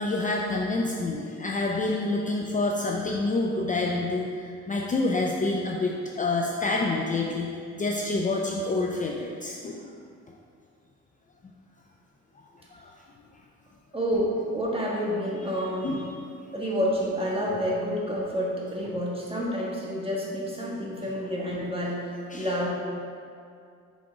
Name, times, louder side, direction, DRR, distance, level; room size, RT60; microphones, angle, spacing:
voice 1, 0.0-9.9 12.7-12.9 15.5-16.2 22.3-22.5, left 2 dB, 25° left, -1 dB, 0.5 m, -28 dB
voice 2, 13.9-16.0 16.5-22.0 22.3-22.7, equal, 20° right, -4 dB, 1.5 m, -29 dB
6.0 x 3.6 x 4.9 m, 2.4 s
cardioid pair, 90°, 30 cm